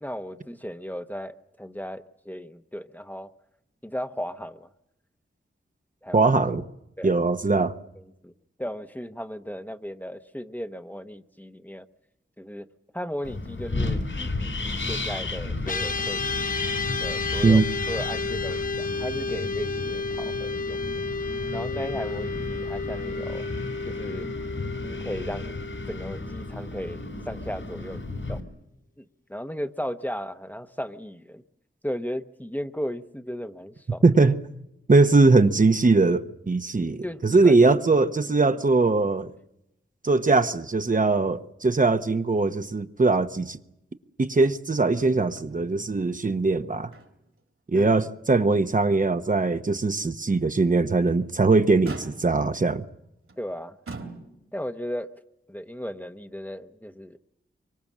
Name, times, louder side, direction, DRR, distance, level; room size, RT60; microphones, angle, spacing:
voice 1, 0.0-3.3 3.8-4.7 6.0-6.3 7.0-7.1 7.9-8.3 8.6-11.9 12.4-12.7 12.9-16.6 17.0-20.8 21.5-23.4 23.9-24.3 24.8-25.5 25.9-28.0 28.3-28.4 29.0-31.4 31.8-34.0 37.0-37.7 47.7-47.9 53.4-53.8 54.5-55.1 55.5-57.2, equal, 10° left, 1.0 m, -36 dB
voice 2, 6.1-6.6 7.0-7.8 17.4-17.6 34.0-34.4 34.9-39.3 40.0-43.6 44.2-46.9 47.7-52.8, right 3 dB, 40° right, 1.0 m, -21 dB
Wind, 13.2-28.4, left 2 dB, 70° left, 4.1 m, -33 dB
sound 1, 15.6-27.1, left 4 dB, 40° left, 1.0 m, -32 dB
Motor vehicle (road), 44.9-45.5 45.8-45.9 46.5-47.4 47.8-48.0 48.5-48.6 50.8-51.3 51.8-52.5 53.3-53.4 53.9-54.7 55.7-55.8, right 3 dB, 80° right, 3.5 m, -43 dB
25.0 x 24.0 x 7.4 m
wide cardioid pair, 100°, 21 cm